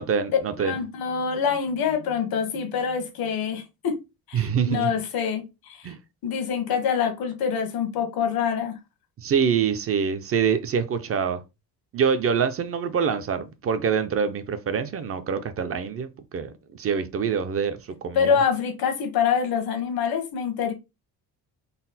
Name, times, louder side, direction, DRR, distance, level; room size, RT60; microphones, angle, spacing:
voice 1, 0.0-0.7 4.3-4.9 5.8-6.0 9.2-11.4 11.9-18.4, right 6 dB, 40° right, 0.4 m, -25 dB
voice 2, 0.6-3.9 4.3-5.9 6.2-8.7 18.1-20.7, left 7 dB, 75° left, 1.1 m, -25 dB
4.0 x 2.1 x 4.0 m
cardioid pair, 155°, 37 cm